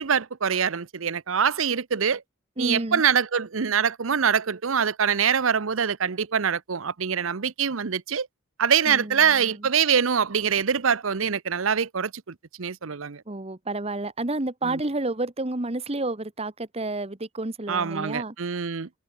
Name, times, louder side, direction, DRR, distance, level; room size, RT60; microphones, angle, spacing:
voice 1, 0.0-2.2 2.6-8.3 8.6-13.2 14.7-14.8 17.7-18.9, right 7 dB, 70° right, 0.8 m, -24 dB
voice 2, 2.6-3.0 8.9-9.7 13.3-18.3, right 2 dB, 30° right, 1.2 m, -30 dB
head